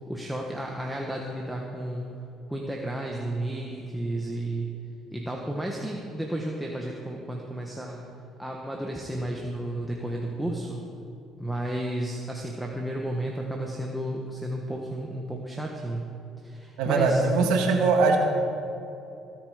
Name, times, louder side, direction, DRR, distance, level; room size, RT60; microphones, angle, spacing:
voice 1, 0.1-2.1 2.5-4.8 5.1-8.1 8.4-10.8 11.4-16.1 16.4-17.5, right 1 dB, 5° right, -1 dB, 1.4 m, -32 dB
voice 2, 16.8-18.2, right 4 dB, 90° right, 2 dB, 1.7 m, -21 dB
18.0 x 9.5 x 5.1 m, 2.8 s
cardioid pair, 100°, 0 cm